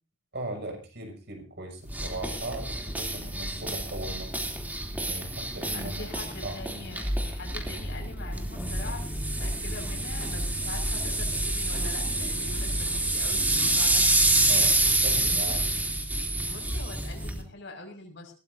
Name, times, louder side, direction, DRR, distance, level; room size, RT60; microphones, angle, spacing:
voice 1, 0.3-4.7 5.1-6.1 6.4-6.6 14.5-15.7, right 1 dB, 50° right, 4 dB, 6.7 m, -38 dB
sound 1, 1.9-17.4, right 2 dB, 10° right, 3.1 m, -28 dB
voice 2, 5.4-14.1 16.5-18.3, left 2 dB, 55° left, 2 dB, 6.0 m, -43 dB
21.5 x 18.5 x 2.8 m, 0.36 s
head